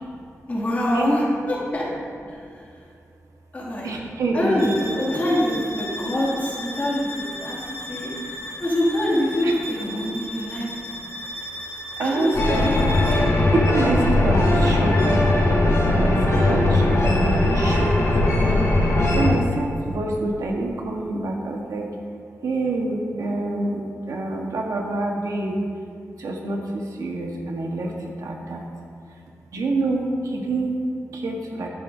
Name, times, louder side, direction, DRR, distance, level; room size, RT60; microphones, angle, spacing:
voice 1, 0.5-1.9 2.3-2.4 3.5-3.9 4.3-7.6 7.9-8.1 8.6-10.7 12.0-12.8, left 1 dB, 30° left, -6 dB, 2.3 m, -24 dB
voice 2, 3.8-4.8 9.4-9.5 12.0-12.7 13.7-15.3 16.0-16.2 16.5-17.9 19.1-21.8 22.4-23.8 24.1-25.6 26.2-27.9 28.2-28.6 29.5-30.7 31.2-31.7, right 2 dB, 85° right, 1 dB, 1.2 m, -26 dB
sound 1, 4.6-13.4, equal, 60° left, 1.8 m, -35 dB
sound 2, 12.3-19.3, left 1 dB, 85° left, 2.6 m, -19 dB
11.0 x 11.0 x 2.7 m, 2.4 s
wide cardioid pair, 155°, 5 cm